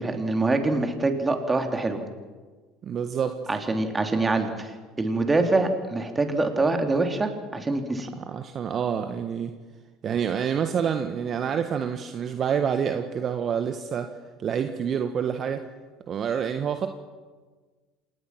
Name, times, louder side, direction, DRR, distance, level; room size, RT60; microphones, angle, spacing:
voice 1, 0.0-2.0 3.5-8.1, right 2 dB, 20° right, 5 dB, 3.3 m, -25 dB
voice 2, 2.8-3.4 8.3-9.5 10.0-14.1 14.4-15.7 16.1-16.9, right 7 dB, 45° right, 8 dB, 1.4 m, -27 dB
27.5 x 19.0 x 6.0 m, 1.4 s
hypercardioid pair, 70°, 0 cm